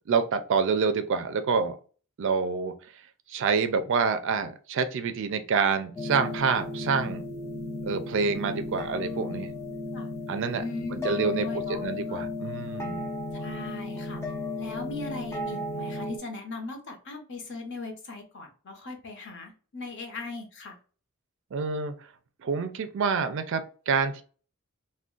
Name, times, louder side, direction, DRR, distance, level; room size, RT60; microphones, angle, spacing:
voice 1, 0.1-1.8 2.2-2.7 3.3-7.2 7.8-9.5 10.3-10.6 10.9-13.1 21.5-21.9 22.4-24.2, right 5 dB, 60° right, 9 dB, 0.4 m, -27 dB
sound 1, 6.0-16.2, left 2 dB, 15° left, 0.5 m, -34 dB
voice 2, 10.6-11.8 12.1-12.2 13.3-14.2 14.6-20.8, left 3 dB, 55° left, 3 dB, 0.8 m, -39 dB
2.4 x 2.2 x 3.6 m, 0.39 s
head